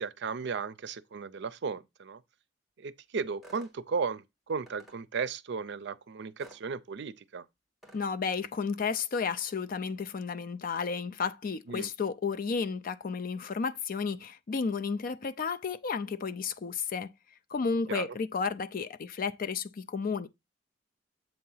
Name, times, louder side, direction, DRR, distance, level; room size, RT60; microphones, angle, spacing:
voice 1, 0.0-2.2 2.8-7.5 11.7-11.9 17.9-18.1, right 5 dB, 65° right, 0.5 m, -35 dB
sound 1, 3.4-3.7 4.7-5.0 6.4-6.6 7.8-8.0, right 1 dB, ahead, 1.2 m, -52 dB
voice 2, 7.9-17.1 17.5-20.3, left 5 dB, 50° left, 0.4 m, -32 dB
7.7 x 2.8 x 5.5 m
head